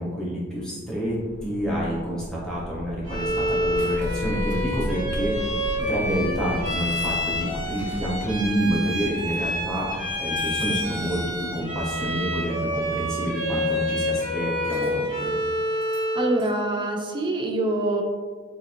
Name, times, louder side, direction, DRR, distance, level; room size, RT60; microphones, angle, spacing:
voice 1, 0.0-5.5 5.9-15.3, equal, 5° left, -7 dB, 0.7 m, -28 dB
sound 1, 1.0-14.1, left 1 dB, 60° left, 0.4 m, -36 dB
Bowed string instrument, 3.0-16.4, equal, 85° right, 1.1 m, -28 dB
sound 2, 3.5-4.2 4.4-5.1 5.6-5.9 6.7-8.2 8.5-9.4 10.4-11.3 14.7-14.9 15.8-16.1 16.3-16.6, right 5 dB, 40° right, 0.8 m, -46 dB
voice 2, 16.2-18.0, right 2 dB, 25° right, 2 dB, 0.3 m, -25 dB
3.7 x 2.5 x 2.8 m, 1.5 s
head